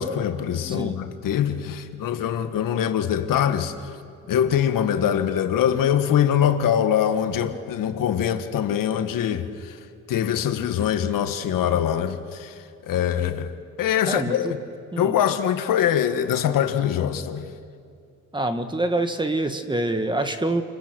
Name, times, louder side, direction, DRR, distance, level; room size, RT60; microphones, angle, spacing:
voice 1, 0.0-3.7 4.3-9.7 10.1-12.5 12.9-13.5 13.8-14.6 15.0-17.4, left 9 dB, 85° left, 1.5 m, -23 dB
voice 2, 0.7-1.0 14.1-14.5 14.9-15.2 18.3-20.6, right 2 dB, 15° right, 1.7 m, -26 dB
28.0 x 28.0 x 6.2 m
cardioid pair, 105°, 32 cm